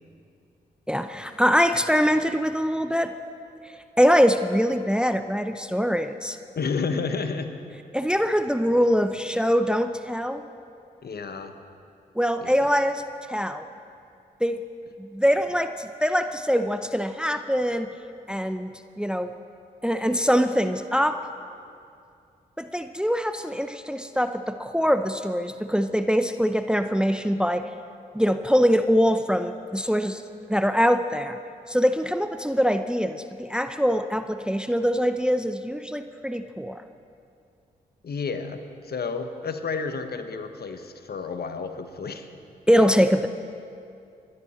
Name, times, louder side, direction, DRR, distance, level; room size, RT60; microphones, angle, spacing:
voice 1, 0.9-3.1 4.0-6.4 7.9-10.4 12.2-13.0 13.3-13.6 14.4-14.6 15.0-17.9 18.3-19.3 19.8-21.2 22.6-27.7 28.1-30.2 30.5-31.4 31.7-36.8 42.7-43.3, equal, 5° right, 9 dB, 0.7 m, -23 dB
voice 2, 6.6-7.5 11.0-11.5 12.4-12.6 38.0-42.3, left 4 dB, 60° left, 8 dB, 1.2 m, -31 dB
24.5 x 11.0 x 4.3 m, 2.5 s
supercardioid pair, 40°, 19 cm